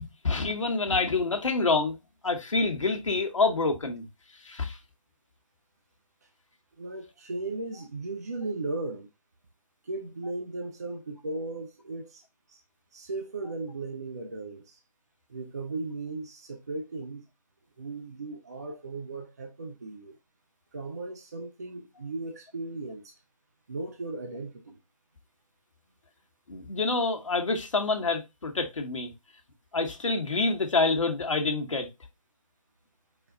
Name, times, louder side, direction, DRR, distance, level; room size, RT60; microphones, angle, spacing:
voice 1, 0.0-2.0 2.2-4.0 4.4-4.8 26.5-29.1 29.7-31.9, left 3 dB, 60° left, 1.1 m, -27 dB
voice 2, 6.8-9.1 9.8-12.2 12.5-12.6 12.9-14.8 15.3-17.3 17.8-20.1 20.7-23.1 23.7-24.8, right 3 dB, 30° right, 0.4 m, -36 dB
4.8 x 2.2 x 3.7 m
figure-of-eight pair, 150°, 18 cm